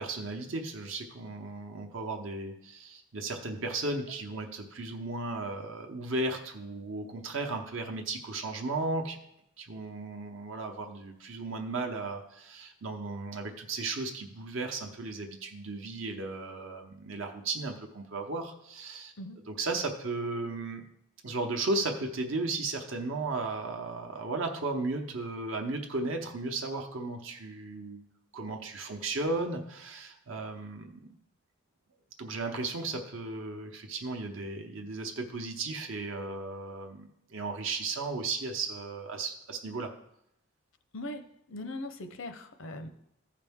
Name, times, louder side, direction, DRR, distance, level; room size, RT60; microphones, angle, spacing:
voice 1, 0.0-9.2 9.6-19.1 19.5-20.8 21.2-28.0 28.3-31.1 32.2-39.9, right 3 dB, 65° right, 3 dB, 0.8 m, -35 dB
voice 2, 40.9-42.9, left 1 dB, 70° left, 8 dB, 0.7 m, -40 dB
14.5 x 5.0 x 3.6 m, 0.78 s
head